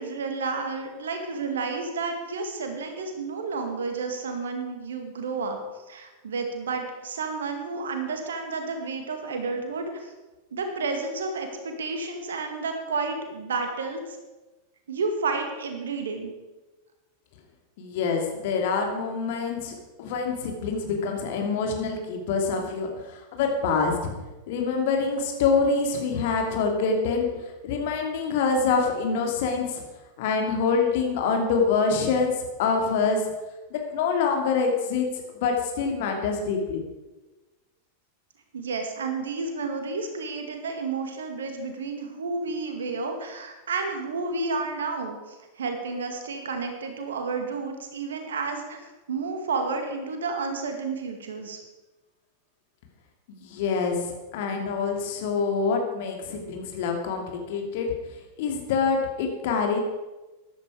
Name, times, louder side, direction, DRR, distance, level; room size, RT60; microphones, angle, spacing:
voice 1, 0.0-5.6 5.9-10.1 10.5-14.0 14.9-16.3 38.5-51.6, right 4 dB, 65° right, 5 dB, 2.2 m, -31 dB
voice 2, 17.8-24.0 24.5-29.8 30.2-32.3 32.6-33.2 33.7-35.1 35.3-36.8 53.3-57.9 58.4-59.8, left 5 dB, 50° left, 3 dB, 2.7 m, -26 dB
14.5 x 11.5 x 5.0 m, 1.1 s
figure-of-eight pair, 90°, 0 cm